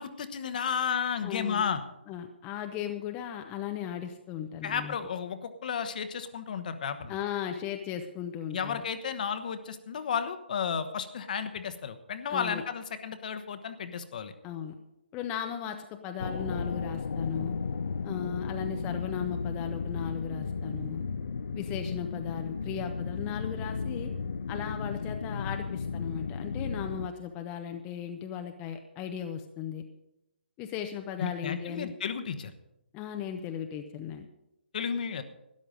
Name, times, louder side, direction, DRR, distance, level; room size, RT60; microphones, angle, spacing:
voice 1, 0.0-1.8 4.6-7.2 8.5-14.3 31.2-32.5 34.7-35.2, left 7 dB, 50° left, 10 dB, 1.1 m, -33 dB
voice 2, 1.2-1.6 2.1-4.9 7.1-8.8 12.3-12.6 14.4-14.8 15.1-17.5 18.0-21.0 21.5-24.1 24.5-29.8 30.6-31.9 32.9-34.3, left 9 dB, 20° left, 5 dB, 0.7 m, -37 dB
sound 1, 16.2-27.1, left 5 dB, 65° left, 0.6 m, -34 dB
13.0 x 10.5 x 5.2 m, 0.89 s
hypercardioid pair, 155°, 6 cm